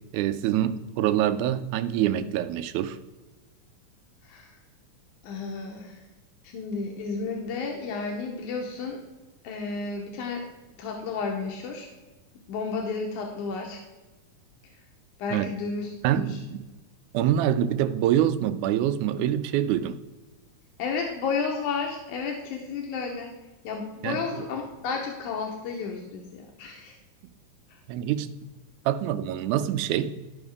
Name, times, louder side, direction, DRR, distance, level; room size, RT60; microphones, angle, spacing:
voice 1, 0.1-3.0 15.3-15.5 16.0-16.6 17.1-20.0 24.0-24.2 27.9-28.3 28.9-30.1, right 11 dB, 85° right, 12 dB, 2.1 m, -25 dB
voice 2, 5.2-6.0 6.4-9.0 9.4-10.5 10.8-11.9 12.5-13.8 15.2-16.4 20.8-23.3 23.6-27.0, left 4 dB, 85° left, 1 dB, 2.4 m, -32 dB
13.5 x 5.3 x 3.5 m, 1.1 s
omnidirectional pair, 3.5 m